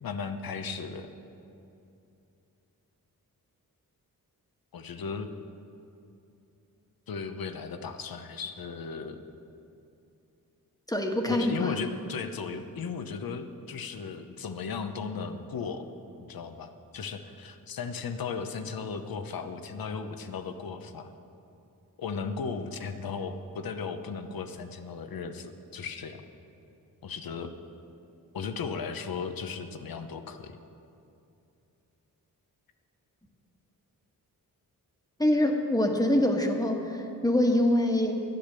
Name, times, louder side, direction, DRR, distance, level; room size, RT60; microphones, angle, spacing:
voice 1, 0.0-1.1 4.7-5.3 7.1-9.2 11.3-15.9 16.2-21.1 22.0-26.2 27.0-27.5 28.3-30.5, left 5 dB, 75° left, 8 dB, 0.9 m, -36 dB
voice 2, 10.9-11.7 35.2-38.2, left 1 dB, 10° left, 2 dB, 1.4 m, -25 dB
12.0 x 10.0 x 6.8 m, 2.8 s
wide cardioid pair, 95°, 36 cm